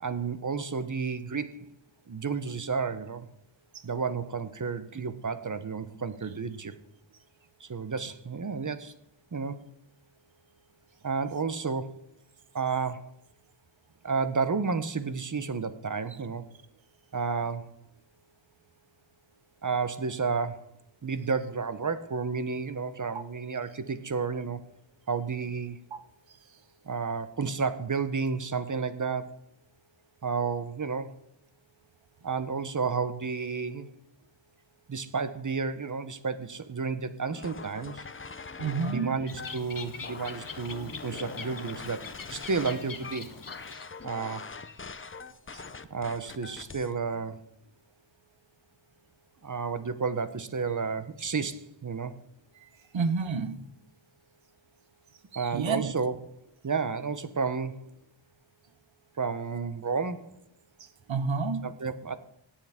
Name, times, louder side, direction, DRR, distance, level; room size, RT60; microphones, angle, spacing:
voice 1, 0.0-1.7 2.1-3.3 3.8-6.7 7.6-8.9 9.3-9.6 11.0-11.9 12.5-13.1 14.0-16.5 17.1-17.7 19.6-20.7 21.0-24.6 25.1-25.8 26.8-29.4 30.2-31.1 32.2-33.9 34.9-38.0 38.9-43.3 44.0-44.5 45.9-47.4 49.4-52.1 55.3-56.1 56.6-57.9 59.2-60.4 61.6-62.2, right 5 dB, 40° right, 0.9 m, -31 dB
sound 1, 37.3-46.9, left 4 dB, 25° left, 0.7 m, -43 dB
voice 2, 38.6-39.2 45.5-45.6 52.9-53.6 55.3-55.9 60.8-61.8, right 4 dB, 75° right, 1.1 m, -30 dB
Bird, 39.3-44.0, left 5 dB, 45° left, 1.1 m, -43 dB
17.5 x 7.4 x 3.6 m
wide cardioid pair, 90°, 46 cm